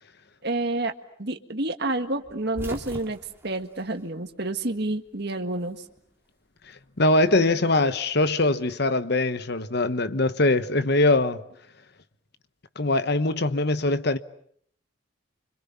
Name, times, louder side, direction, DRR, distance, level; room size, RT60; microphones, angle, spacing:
voice 1, 0.4-0.9 1.2-5.8, right 2 dB, 50° right, 1.7 m, -29 dB
sound 1, 2.2-4.8 5.1-6.1 7.3-8.8, equal, 10° right, 2.1 m, -42 dB
voice 2, 7.0-11.4 12.8-14.2, left 2 dB, 50° left, 1.1 m, -22 dB
29.5 x 25.5 x 7.1 m
head